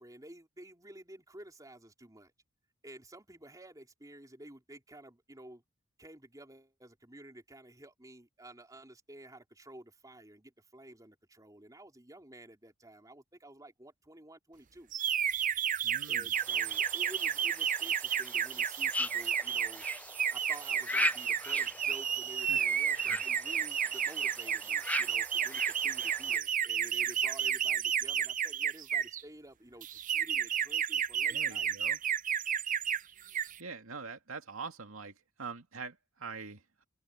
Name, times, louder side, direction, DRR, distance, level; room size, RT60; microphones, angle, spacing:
voice 1, 0.0-2.3 2.8-5.6 6.0-14.9 16.1-19.9 20.3-31.7, right 1 dB, 15° right, 3.9 m, -52 dB
sound 1, 14.9-29.2 29.8-33.0 33.3-33.6, right 9 dB, 40° right, 0.6 m, -32 dB
voice 2, 15.8-16.3 21.6-21.7 22.5-22.6 22.9-23.3 31.3-32.0 33.6-36.8, right 4 dB, 75° right, 2.4 m, -44 dB
sound 2, 16.3-26.4, left 2 dB, 5° left, 0.4 m, -40 dB
head